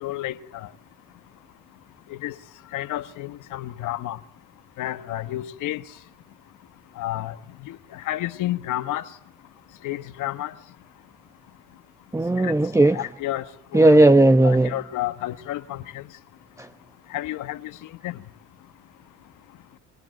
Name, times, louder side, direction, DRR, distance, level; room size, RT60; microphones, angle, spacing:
voice 1, 0.0-0.7 2.1-2.4 2.7-4.2 4.8-5.8 7.0-7.3 7.6-9.0 9.8-10.5 12.4-12.5 12.9-13.5 13.7-14.0 14.4-16.0 17.1-17.7 18.0-18.2, left 14 dB, 90° left, 1.4 m, -30 dB
voice 2, 12.1-13.0 13.7-14.7 16.6-16.7, right 2 dB, 10° right, 1.1 m, -16 dB
28.5 x 19.5 x 9.1 m
cardioid pair, 90°, 30 cm